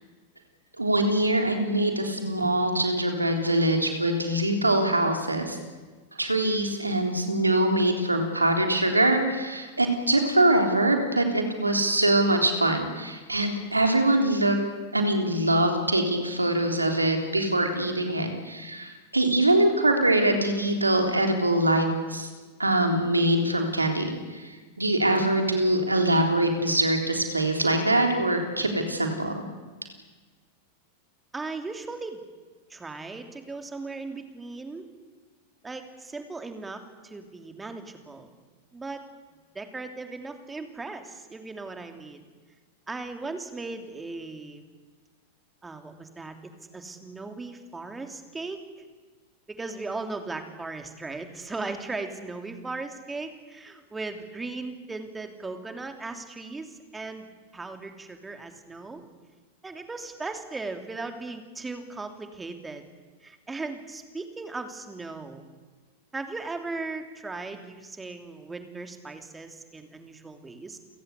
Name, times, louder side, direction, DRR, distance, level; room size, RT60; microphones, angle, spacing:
voice 1, 0.8-5.6 6.2-14.6 14.9-22.3 22.6-24.2 24.4-29.4, right 1 dB, 80° right, 4 dB, 3.6 m, -23 dB
voice 2, 31.3-32.2 32.7-34.9 35.6-38.3 38.7-39.0 39.5-42.3 42.9-44.6 45.6-48.6 49.5-57.3 57.5-59.0 59.6-62.8 63.2-65.4 66.1-70.8, right 3 dB, 10° right, 6 dB, 3.2 m, -37 dB
30.0 x 17.0 x 8.3 m, 1.3 s
figure-of-eight pair, 90°, 0 cm